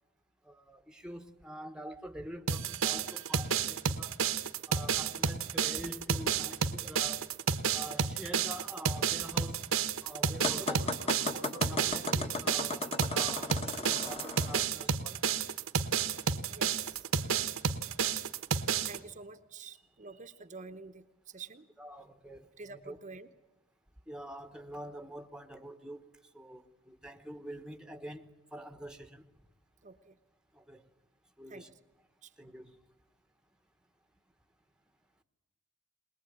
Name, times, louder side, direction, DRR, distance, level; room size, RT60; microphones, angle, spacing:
voice 1, 0.4-4.2 4.7-7.3 7.7-9.7 10.0-11.0 11.4-15.4 16.1-16.3 21.8-23.0 24.1-29.3 30.5-30.9 31.4-31.7 32.4-32.8, right 1 dB, 5° right, 1.1 m, -46 dB
sound 1, 2.5-19.0, right 6 dB, 80° right, 1.2 m, -31 dB
sound 2, 10.4-14.6, left 3 dB, 30° left, 1.4 m, -36 dB
voice 2, 16.5-17.0 18.8-21.7 22.6-23.3 29.8-30.1 31.5-31.7 32.2-32.3, right 4 dB, 35° right, 0.9 m, -48 dB
21.5 x 21.0 x 9.3 m
head